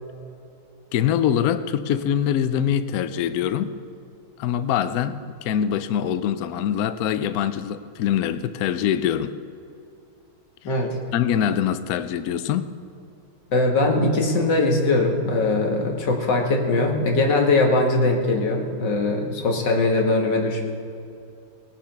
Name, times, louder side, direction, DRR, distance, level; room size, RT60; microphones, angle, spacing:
voice 1, 0.9-3.7 4.4-9.3 11.1-12.7, left 9 dB, 85° left, 12 dB, 0.8 m, -24 dB
voice 2, 13.5-20.7, left 2 dB, 55° left, 1 dB, 2.3 m, -21 dB
19.5 x 7.3 x 5.8 m, 2.6 s
omnidirectional pair, 2.3 m